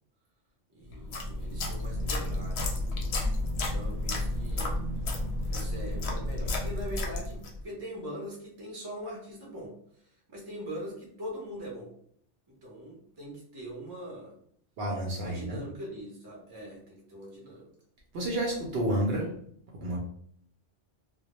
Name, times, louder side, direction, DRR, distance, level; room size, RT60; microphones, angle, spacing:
voice 1, 0.7-2.9 3.7-4.8 5.5-9.7 10.3-11.9 12.5-14.3 15.2-17.7, equal, 25° right, -2 dB, 0.6 m, -42 dB
sound 1, 0.9-7.6, left 1 dB, 65° left, 0.8 m, -31 dB
voice 2, 14.8-15.6 18.1-19.3 19.8-20.0, right 1 dB, 60° right, -2 dB, 0.7 m, -30 dB
2.1 x 2.1 x 2.9 m, 0.64 s
omnidirectional pair, 1.2 m